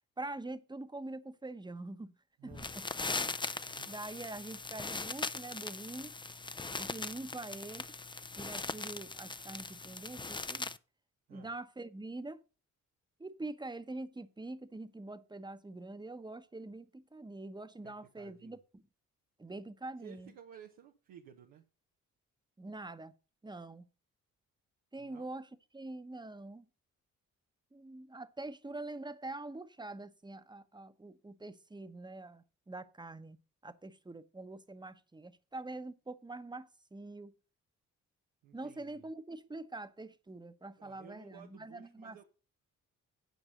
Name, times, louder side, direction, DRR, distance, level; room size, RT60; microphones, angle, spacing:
voice 1, 0.2-2.1 2.4-2.8 3.4-6.1 6.8-7.8 8.4-10.7 11.3-12.4 13.2-18.8 19.4-20.3 22.6-23.1 23.4-23.8 24.9-26.7 27.7-33.4 33.6-37.3 38.5-42.2, right 2 dB, 15° right, 1.0 m, -45 dB
voice 2, 2.4-2.7 3.3-3.9 7.3-7.5 11.3-11.5 17.8-18.6 20.0-21.6 25.0-25.3 38.4-39.1 40.8-42.2, right 9 dB, 85° right, 1.0 m, -56 dB
sound 1, 2.5-10.8, left 3 dB, 15° left, 0.5 m, -40 dB
9.3 x 5.3 x 6.4 m
supercardioid pair, 50°, 34 cm